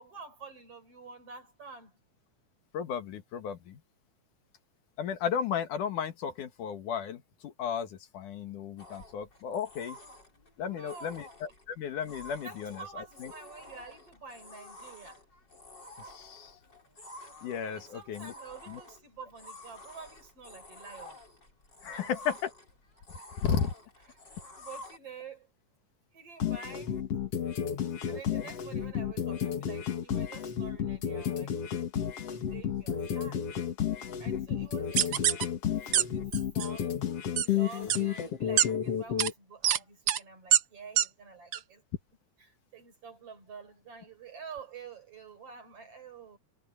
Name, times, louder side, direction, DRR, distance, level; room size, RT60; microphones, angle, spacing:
voice 1, 0.0-2.0 10.6-11.2 12.4-15.2 17.6-21.2 21.9-22.3 24.6-25.5 26.1-27.1 28.1-31.5 32.3-33.6 34.2-35.6 35.9-36.2 36.5-37.0 37.4-41.8 42.5-46.4, right 5 dB, 45° right, 5.6 m, -48 dB
voice 2, 2.7-3.8 5.0-10.0 10.6-13.3 16.0-16.6 17.2-18.3 18.7-18.8 21.8-22.5 23.4-23.7 28.1-28.5 34.3-34.4, left 7 dB, 75° left, 3.2 m, -34 dB
sound 1, 8.8-25.0, left 1 dB, 30° left, 6.4 m, -50 dB
sound 2, 26.4-39.3, left 9 dB, 55° left, 2.7 m, -32 dB
sound 3, 35.0-35.4 35.9-36.0 36.3-36.7 37.4-37.5 37.9-38.0 38.6-38.7 39.2-39.3 39.6-39.8 40.1-40.2 40.5-40.6 41.0-41.1 41.5-41.6, right 10 dB, 85° right, 1.0 m, -24 dB
omnidirectional pair, 3.6 m